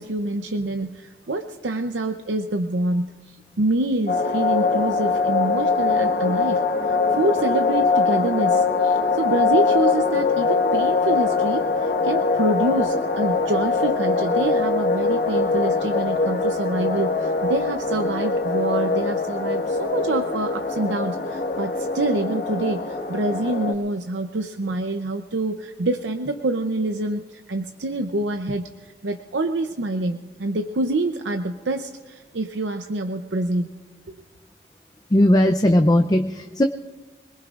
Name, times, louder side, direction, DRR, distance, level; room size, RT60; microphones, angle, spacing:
voice 1, 0.0-3.1 3.6-33.7, right 2 dB, 90° right, 6 dB, 0.7 m, -26 dB
sound 1, 4.1-23.7, left 4 dB, 50° left, 1.4 m, -22 dB
voice 2, 35.1-36.6, left 1 dB, 20° left, 6 dB, 0.5 m, -17 dB
25.5 x 20.0 x 2.5 m, 1.3 s
head